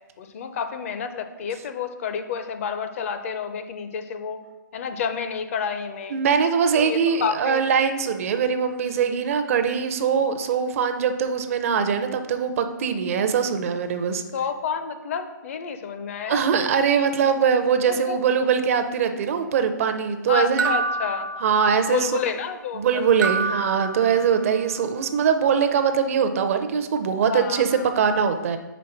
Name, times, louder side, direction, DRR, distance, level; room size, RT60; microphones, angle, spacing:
voice 1, 0.2-4.4 4.7-6.2 6.8-7.6 14.3-16.4 17.9-18.2 20.3-21.4 21.8-23.3 23.8-24.0 27.2-27.9, left 6 dB, 45° left, 9 dB, 0.5 m, -30 dB
voice 2, 6.1-14.2 16.3-20.7 21.4-22.1 22.7-27.7 28.0-28.6, right 6 dB, 45° right, 8 dB, 0.5 m, -22 dB
sound 1, 20.6-22.1 23.2-24.7, right 4 dB, 85° right, 0.7 m, -28 dB
5.1 x 3.8 x 5.6 m, 1.1 s
hypercardioid pair, 155°, 11 cm